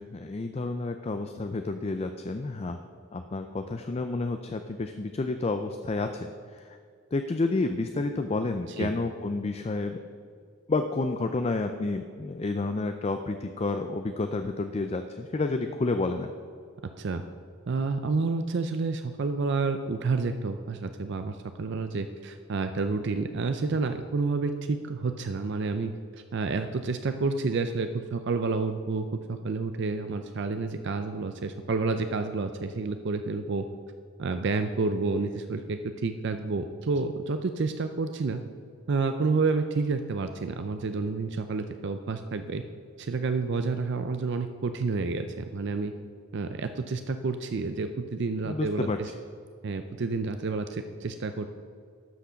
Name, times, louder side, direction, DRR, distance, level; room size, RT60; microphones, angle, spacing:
voice 1, 0.0-2.8 3.1-6.8 7.1-10.0 10.7-16.3 48.4-49.0, left 3 dB, 30° left, 7 dB, 0.4 m, -30 dB
voice 2, 17.7-25.9 26.3-33.7 34.2-38.4 38.9-42.6 43.0-45.9 46.3-49.1 49.6-51.5, right 4 dB, 55° right, 8 dB, 0.5 m, -29 dB
12.5 x 6.2 x 5.7 m, 2.2 s
head